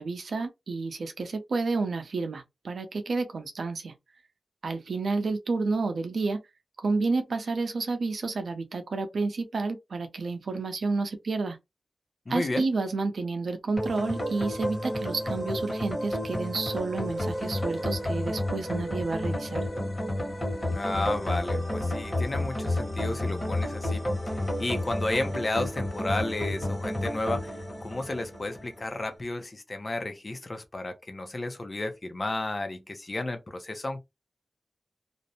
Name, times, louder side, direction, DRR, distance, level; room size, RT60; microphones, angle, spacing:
voice 1, 0.0-3.9 4.6-6.4 6.8-11.6 12.3-19.7, right 3 dB, 70° right, 0.6 m, -30 dB
voice 2, 12.3-12.7 20.7-24.0 24.6-34.0, left 2 dB, 35° left, 0.6 m, -32 dB
sound 1, 13.8-28.8, left 1 dB, 20° left, 1.3 m, -31 dB
2.5 x 2.0 x 2.8 m
wide cardioid pair, 115°, 0 cm